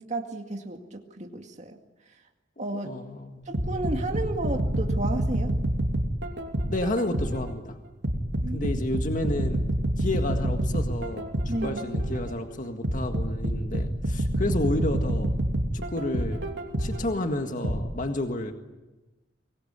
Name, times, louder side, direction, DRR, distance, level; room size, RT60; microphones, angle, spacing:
voice 1, 0.0-1.8 2.6-2.9 3.5-5.5 8.4-8.7 11.5-11.8, right 2 dB, 40° right, 3 dB, 2.2 m, -33 dB
voice 2, 2.8-3.5 6.7-7.8 8.5-9.6 10.0-11.3 11.6-15.3 15.7-16.4 16.8-18.5, left 1 dB, 45° left, 5 dB, 1.8 m, -30 dB
sound 1, 3.5-7.5 8.0-12.3 12.8-17.1 17.6-17.8, right 1 dB, 65° right, 3.1 m, -27 dB
24.5 x 21.0 x 9.9 m, 1.1 s
head